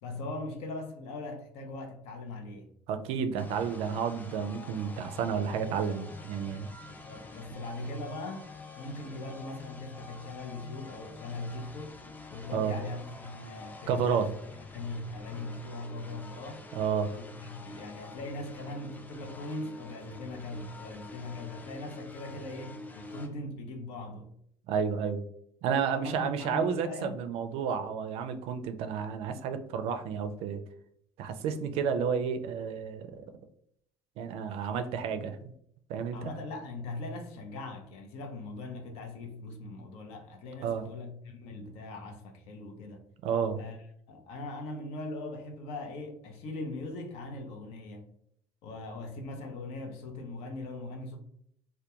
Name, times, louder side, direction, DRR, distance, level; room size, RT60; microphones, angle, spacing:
voice 1, 0.0-2.7 6.9-8.5 8.8-12.0 12.3-14.3 14.7-16.6 17.1-24.3 25.9-27.2 36.1-43.0 43.6-43.8 44.1-48.0 48.6-51.2, left 2 dB, 75° left, 0.6 m, -40 dB
voice 2, 2.9-6.7 12.5-12.8 13.9-14.3 16.7-17.1 24.7-25.2 25.6-30.6 31.2-33.2 34.2-35.5 35.9-36.3 40.6-40.9 43.2-43.6, right 7 dB, 70° right, 0.3 m, -31 dB
sound 1, 3.4-23.3, left 3 dB, 15° left, 0.4 m, -48 dB
2.2 x 2.2 x 2.8 m
supercardioid pair, 95°, 11 cm